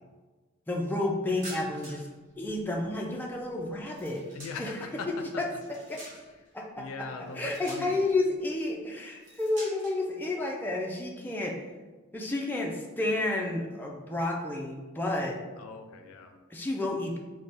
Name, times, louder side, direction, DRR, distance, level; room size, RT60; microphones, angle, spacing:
voice 1, 0.7-2.0 2.4-4.2 4.6-4.7 5.4-5.5 5.9-6.0 6.5-6.8 7.4-11.6 12.1-15.4 16.5-17.2, left 2 dB, 10° left, -1 dB, 0.3 m, -31 dB
sound 1, 1.3-2.2 2.5-4.9 5.3-6.5 7.3-8.2 9.0-10.0, right 1 dB, 40° right, 1.2 m, -47 dB
voice 2, 4.3-5.1 5.3-5.6 6.8-8.1 15.6-16.4, left 4 dB, 85° left, 6 dB, 0.4 m, -40 dB
3.3 x 2.1 x 4.0 m, 1.3 s
head